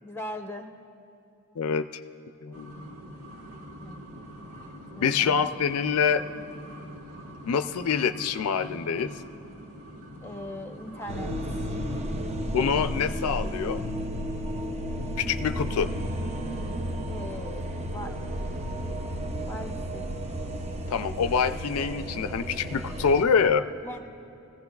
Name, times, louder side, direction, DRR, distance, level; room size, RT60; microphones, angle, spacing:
voice 1, 0.0-0.7 3.8-4.1 4.9-5.5 10.2-11.3 17.1-18.2 18.4-18.5 19.4-20.0 23.8-24.0, left 1 dB, 10° left, 4 dB, 0.7 m, -40 dB
voice 2, 1.6-1.9 2.4-2.7 5.0-6.2 7.5-9.1 12.5-13.8 15.2-15.9 20.9-23.7, left 6 dB, 90° left, 10 dB, 0.4 m, -25 dB
sound 1, 2.5-12.6, equal, 85° right, 1.6 m, -44 dB
sound 2, 11.1-23.2, equal, 30° right, 0.6 m, -33 dB
21.5 x 15.5 x 2.3 m, 2.8 s
head